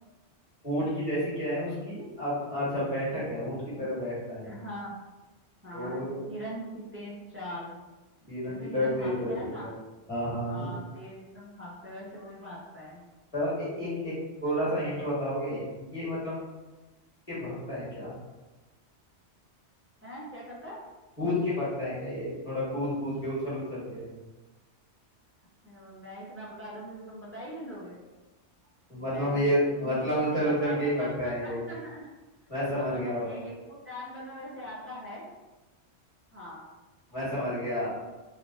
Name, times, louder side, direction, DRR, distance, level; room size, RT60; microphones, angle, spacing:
voice 1, 0.6-4.5 5.7-6.2 8.3-9.7 10.1-10.7 13.3-14.1 14.4-16.4 17.3-18.1 21.2-24.0 28.9-31.7 32.5-33.3 37.1-37.9, equal, 30° left, -10 dB, 1.5 m, -30 dB
voice 2, 4.4-5.0 5.6-7.7 8.5-9.7 10.5-13.0 20.0-20.8 25.6-28.0 29.0-29.4 29.7-32.1 32.7-35.3 36.3-36.7, equal, 20° right, -7 dB, 0.4 m, -42 dB
3.1 x 2.4 x 2.4 m, 1.1 s
omnidirectional pair, 1.2 m